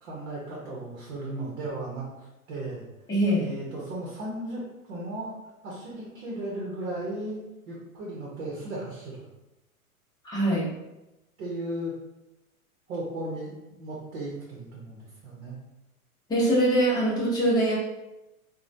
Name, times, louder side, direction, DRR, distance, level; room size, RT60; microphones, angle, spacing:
voice 1, 0.0-2.8 3.3-5.3 5.6-7.4 7.7-9.3 11.4-11.9 12.9-13.5 13.8-15.6, right 1 dB, 55° right, -5 dB, 1.0 m, -36 dB
voice 2, 3.1-3.5 10.2-10.7 16.3-17.8, right 1 dB, 10° left, -7 dB, 0.8 m, -23 dB
3.0 x 2.3 x 2.6 m, 0.96 s
figure-of-eight pair, 105°, 43 cm